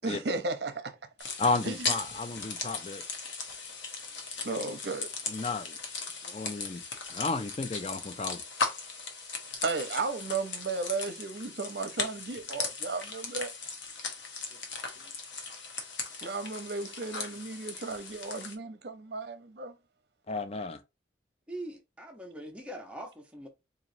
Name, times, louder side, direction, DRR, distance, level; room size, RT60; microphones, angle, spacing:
voice 1, 0.0-1.0 1.6-1.9 4.4-5.1 9.6-13.5 16.2-19.7, right 3 dB, 65° right, 0.6 m, -34 dB
sound 1, 1.2-18.6, left 4 dB, 90° left, 0.9 m, -38 dB
voice 2, 1.4-3.0 5.3-5.8 6.2-6.8 7.1-8.4 20.3-20.8, left 3 dB, 35° left, 0.4 m, -32 dB
voice 3, 21.5-23.5, right 1 dB, 5° right, 0.6 m, -42 dB
3.9 x 3.0 x 2.6 m
head